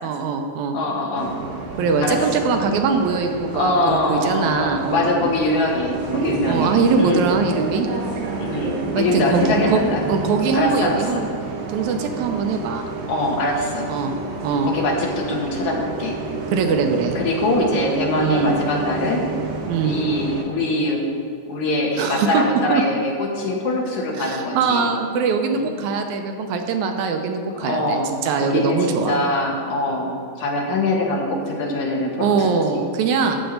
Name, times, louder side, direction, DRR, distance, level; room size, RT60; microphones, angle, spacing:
voice 1, 0.0-0.8 1.8-5.3 6.5-7.9 8.9-9.8 10.1-11.3 11.7-12.9 13.9-14.1 14.4-14.7 16.5-17.1 18.2-18.5 19.7-20.0 22.0-22.4 22.7-22.8 24.2-29.2 32.2-33.4, right 5 dB, 75° right, 5 dB, 1.9 m, -22 dB
voice 2, 0.7-1.3 2.0-2.2 3.5-7.2 8.4-10.0 10.5-11.3 13.1-13.9 14.6-16.1 17.2-19.3 19.8-21.0 21.5-24.8 25.5-25.8 27.6-28.1 28.4-32.5 33.2-33.4, left 2 dB, 65° left, -1 dB, 2.5 m, -23 dB
Bus, 1.2-20.4, right 4 dB, 90° right, 3.1 m, -30 dB
13.0 x 4.5 x 8.0 m, 2.3 s
omnidirectional pair, 3.9 m